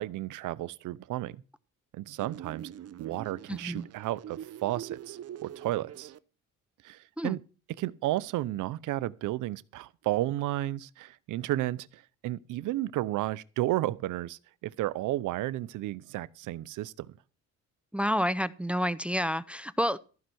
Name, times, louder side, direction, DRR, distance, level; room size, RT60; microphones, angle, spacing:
voice 1, 0.0-1.4 1.9-2.7 3.0-6.1 6.8-7.4 7.8-17.1, right 15 dB, 85° right, 0.7 m, -33 dB
sound 1, 2.2-6.2, right 10 dB, 55° right, 0.7 m, -44 dB
voice 2, 3.5-3.9 7.2-7.4 17.9-20.0, equal, 5° right, 0.6 m, -29 dB
15.0 x 5.7 x 7.7 m
cardioid pair, 90°, 30 cm